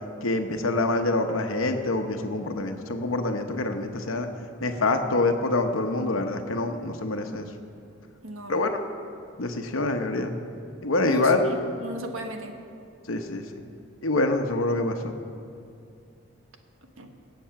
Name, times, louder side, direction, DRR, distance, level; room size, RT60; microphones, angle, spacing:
voice 1, 0.2-4.3 4.6-7.5 8.5-8.8 9.4-10.3 10.8-11.5 13.1-13.4 14.0-15.2, left 2 dB, 85° left, 5 dB, 0.9 m, -26 dB
voice 2, 8.2-8.7 11.0-12.6 17.0-17.2, right 1 dB, 85° right, 4 dB, 1.3 m, -36 dB
18.0 x 7.7 x 5.8 m, 2.6 s
head